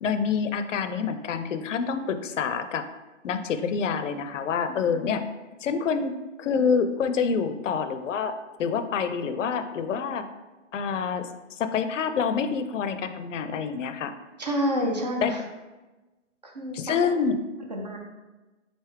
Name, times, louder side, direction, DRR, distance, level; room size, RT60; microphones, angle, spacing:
voice 1, 0.0-2.8 3.2-5.2 5.6-6.1 6.4-8.3 8.6-10.3 10.7-14.1 15.2-15.3 16.7-17.4, left 6 dB, 75° left, 10 dB, 0.5 m, -27 dB
voice 2, 14.4-15.4 16.4-16.9 17.7-18.0, equal, 35° right, 1 dB, 0.4 m, -28 dB
4.1 x 3.3 x 3.1 m, 1.1 s
hypercardioid pair, 160°, 38 cm